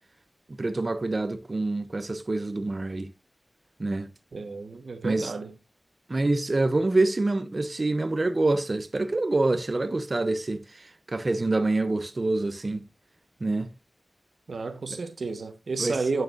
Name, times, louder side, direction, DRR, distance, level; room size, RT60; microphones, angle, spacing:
voice 1, 0.6-3.1 3.8-4.1 5.0-5.3 6.1-10.6 11.1-12.8 13.4-13.7 14.9-15.0 15.8-16.0, right 2 dB, 45° right, 0.7 m, -26 dB
voice 2, 4.3-5.5 14.5-16.2, right 4 dB, 80° right, 1.0 m, -31 dB
9.0 x 6.6 x 2.4 m
wide cardioid pair, 75°, 0 cm